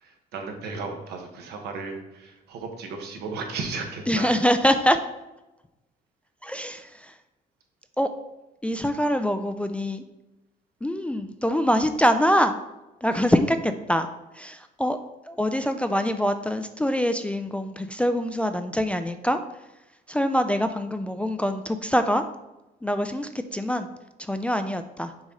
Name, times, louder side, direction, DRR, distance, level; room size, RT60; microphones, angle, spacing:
voice 1, 0.0-4.4, right 4 dB, 75° right, 3 dB, 1.1 m, -35 dB
voice 2, 4.1-5.0 6.4-6.9 8.0-8.1 8.6-10.0 10.8-12.6 13.0-14.1 14.4-15.0 15.3-19.4 20.1-22.2 22.8-23.9 24.3-25.1, equal, 5° left, 8 dB, 0.3 m, -24 dB
6.3 x 4.0 x 3.7 m, 0.99 s
cardioid pair, 110°, 17 cm